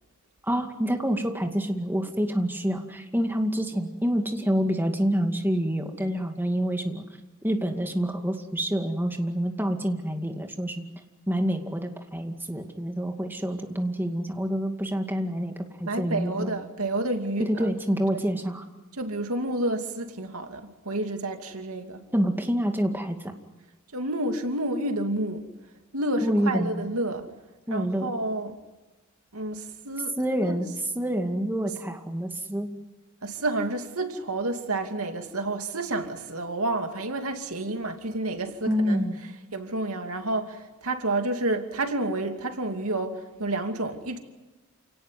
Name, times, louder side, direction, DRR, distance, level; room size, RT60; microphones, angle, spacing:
voice 1, 0.4-7.1 7.4-10.9 11.3-16.5 17.4-18.6 22.1-23.2 26.2-26.8 27.7-28.1 30.2-30.7 30.9-32.7 38.7-39.2, equal, 10° right, 2.2 m, -27 dB
voice 2, 15.8-17.7 19.0-22.1 23.9-25.5 25.9-27.3 27.7-28.6 29.3-30.6 33.2-39.0 39.5-44.2, right 2 dB, 90° right, 2.6 m, -30 dB
29.0 x 18.5 x 9.7 m
head